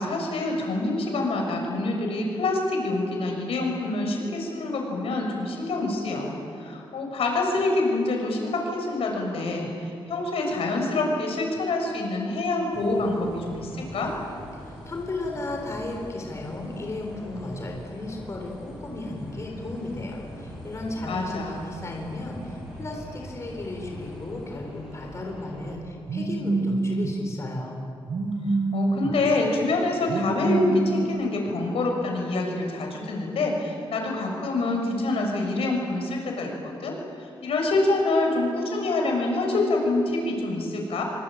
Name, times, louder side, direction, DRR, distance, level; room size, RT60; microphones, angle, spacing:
voice 1, 0.0-14.1 21.1-21.7 28.7-41.0, left 2 dB, 90° left, 1 dB, 6.4 m, -26 dB
sound 1, 12.7-25.7, equal, 5° right, 7.9 m, -42 dB
voice 2, 14.6-27.8, left 2 dB, 30° left, 1 dB, 3.8 m, -34 dB
Telephone, 26.1-27.1 28.1-29.1 30.1-31.1, right 3 dB, 50° right, 4.4 m, -26 dB
25.5 x 25.0 x 9.0 m, 2.6 s
wide cardioid pair, 180°, 10 cm